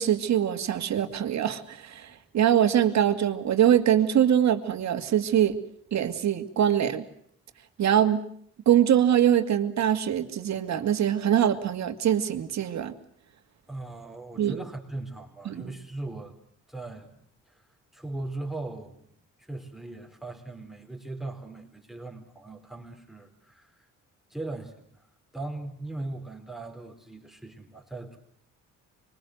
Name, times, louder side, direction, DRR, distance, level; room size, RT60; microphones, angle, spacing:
voice 1, 0.0-5.6 5.9-7.0 7.8-8.2 8.7-12.9 14.4-14.6 15.5-15.7, right 10 dB, 65° right, 8 dB, 2.5 m, -23 dB
voice 2, 13.7-16.4 16.7-17.2 17.5-17.7 17.9-19.1 19.4-23.9 24.3-25.1 25.3-28.2, right 2 dB, ahead, 4 dB, 4.5 m, -39 dB
26.0 x 23.0 x 8.0 m, 0.65 s
cardioid pair, 90°, 30 cm